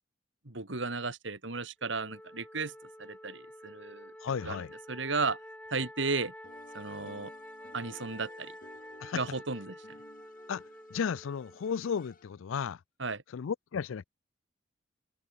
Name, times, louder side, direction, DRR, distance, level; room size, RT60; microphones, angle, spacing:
voice 1, 0.4-2.7 3.0-4.1 4.4-4.6 4.9-5.4 5.7-6.3 6.7-7.3 7.7-8.5 9.1-10.0 13.0-13.2, right 4 dB, 70° right, 2.4 m, -34 dB
Wind instrument woodwind instrument, 1.8-12.2, left 1 dB, 5° left, 4.1 m, -49 dB
voice 2, 4.2-4.7 9.0-9.2 10.5-10.6 10.9-12.8 13.3-14.1, left 7 dB, 85° left, 0.4 m, -34 dB
sound 1, 6.4-12.5, left 1 dB, 45° left, 6.0 m, -57 dB
head